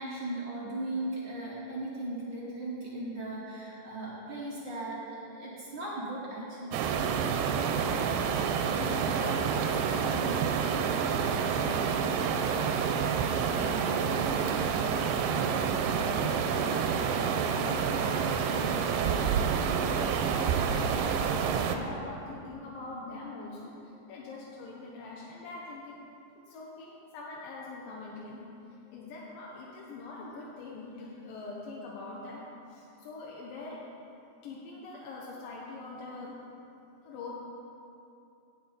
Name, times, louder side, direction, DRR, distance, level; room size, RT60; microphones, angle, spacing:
voice 1, 0.0-6.8, right 1 dB, 50° right, -6 dB, 1.4 m, -37 dB
sound 1, 6.7-21.8, right 6 dB, 85° right, 2.3 m, -28 dB
voice 2, 7.8-8.4 8.8-15.3 16.0-16.8 17.2-19.3 19.9-26.0 26.5-28.5 28.9-33.8 34.4-36.4 37.0-37.3, left 3 dB, 80° left, -4 dB, 2.6 m, -43 dB
16.5 x 6.5 x 4.0 m, 2.7 s
omnidirectional pair, 3.9 m